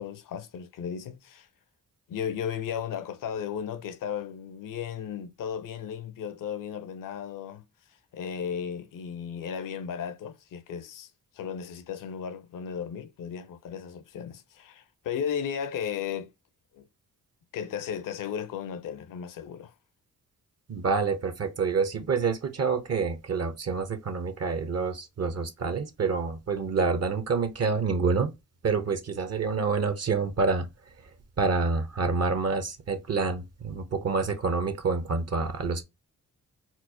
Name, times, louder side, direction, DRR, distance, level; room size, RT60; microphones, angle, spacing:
voice 1, 0.0-1.5 2.1-7.6 8.1-16.3 16.7-16.9 17.5-19.7, left 8 dB, 65° left, 0.7 m, -35 dB
voice 2, 20.7-28.3 28.6-30.7 31.4-35.8, right 4 dB, 45° right, 0.8 m, -27 dB
4.4 x 2.0 x 2.7 m
supercardioid pair, 55°, 35 cm